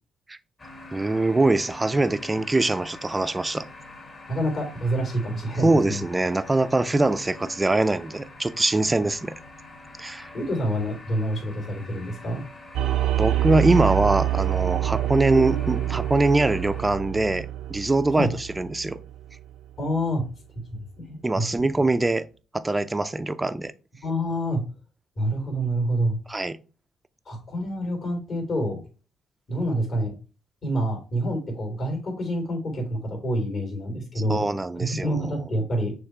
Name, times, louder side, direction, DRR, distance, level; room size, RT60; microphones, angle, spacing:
sound 1, 0.6-16.9, left 2 dB, 35° left, 1.8 m, -45 dB
voice 1, 0.9-3.7 5.6-9.3 10.0-10.3 13.2-19.0 21.2-22.3 22.5-23.7 26.3-26.6 34.3-35.3, right 2 dB, 15° right, 0.5 m, -23 dB
voice 2, 4.3-6.0 10.3-12.4 18.1-18.3 19.8-20.2 20.7-21.7 24.0-24.6 25.2-26.2 27.2-28.8 29.5-30.1 30.6-34.4 34.7-35.9, equal, 50° left, 3.3 m, -27 dB
sound 2, 12.7-19.5, right 13 dB, 85° right, 0.6 m, -26 dB
6.4 x 3.3 x 4.5 m
cardioid pair, 90°, 0 cm